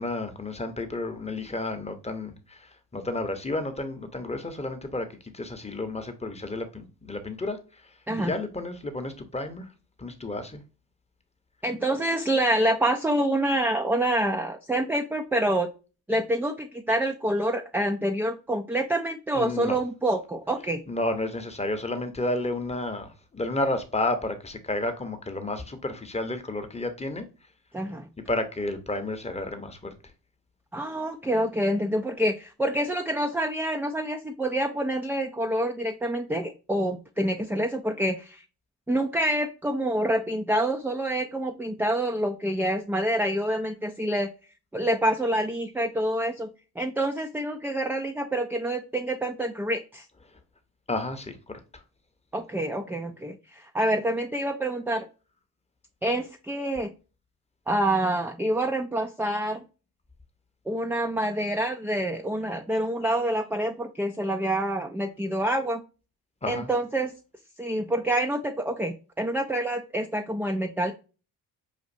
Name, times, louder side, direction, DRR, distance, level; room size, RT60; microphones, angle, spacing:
voice 1, 0.0-9.7 10.0-10.6 19.3-19.8 20.9-27.3 28.3-29.9 50.3-50.4 50.9-51.8 66.4-66.7, left 2 dB, 15° left, 0.8 m, -31 dB
voice 2, 11.6-15.7 16.1-20.8 27.7-28.1 30.7-38.4 38.9-44.3 44.7-46.5 46.8-50.1 52.3-55.1 56.0-56.9 57.7-59.6 60.7-65.8 66.5-67.1 67.6-70.9, right 1 dB, 5° right, 0.3 m, -27 dB
5.0 x 2.5 x 2.5 m
supercardioid pair, 60°, 41 cm